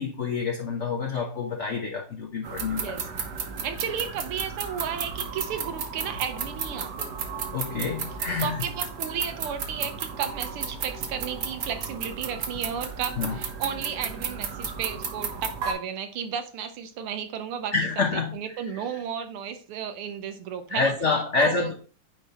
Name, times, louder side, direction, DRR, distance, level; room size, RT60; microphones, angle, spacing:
voice 1, 0.0-3.0 7.5-8.7 13.2-13.4 17.7-18.7 20.7-21.7, left 4 dB, 70° left, 0.6 m, -27 dB
sound 1, 2.4-15.7, right 5 dB, 60° right, 1.3 m, -33 dB
voice 2, 2.8-3.1 3.6-7.1 8.4-20.9 21.4-21.7, right 8 dB, 80° right, 1.6 m, -33 dB
9.2 x 3.9 x 2.9 m
omnidirectional pair, 2.4 m